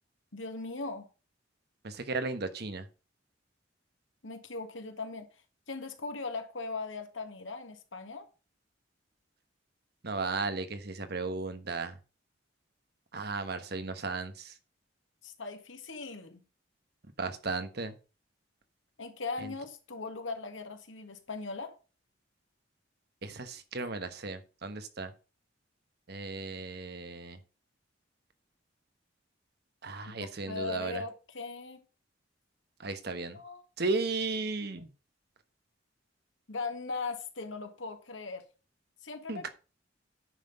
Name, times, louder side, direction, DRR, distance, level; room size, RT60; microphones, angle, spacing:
voice 1, 0.3-1.1 4.2-5.3 5.7-8.3 15.2-16.4 19.0-21.8 30.2-31.8 33.3-33.6 34.7-34.8 36.5-38.4 39.0-39.5, left 3 dB, 90° left, 1.8 m, -39 dB
voice 2, 1.8-2.9 10.0-12.0 13.1-14.5 17.2-17.9 19.4-19.5 23.2-25.1 26.1-27.4 29.8-31.0 32.8-33.4 33.8-34.9 39.3-39.5, right 3 dB, 60° right, 1.3 m, -35 dB
9.8 x 5.8 x 5.4 m
head